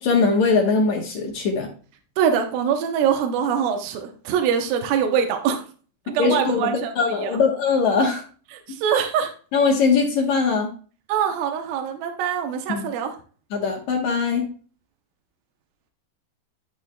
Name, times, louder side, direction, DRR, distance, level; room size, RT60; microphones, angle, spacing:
voice 1, 0.0-1.7 6.2-8.2 9.5-10.7 12.7-12.9 13.5-14.5, left 4 dB, 65° left, 2 dB, 2.1 m, -21 dB
voice 2, 2.2-5.6 6.1-6.9 7.2-7.5 8.5-9.3 11.1-13.2, right 8 dB, 80° right, 4 dB, 2.5 m, -23 dB
12.5 x 6.2 x 2.2 m, 0.40 s
omnidirectional pair, 4.2 m